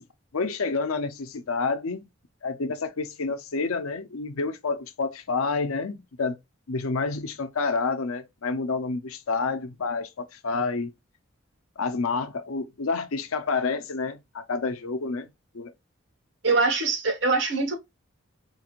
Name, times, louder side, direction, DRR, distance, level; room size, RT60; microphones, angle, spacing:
voice 1, 0.3-2.1 2.4-6.4 6.7-10.9 11.8-15.7, left 4 dB, 90° left, 0.6 m, -29 dB
voice 2, 16.4-17.7, right 3 dB, 60° right, 1.3 m, -23 dB
4.6 x 2.5 x 2.9 m
head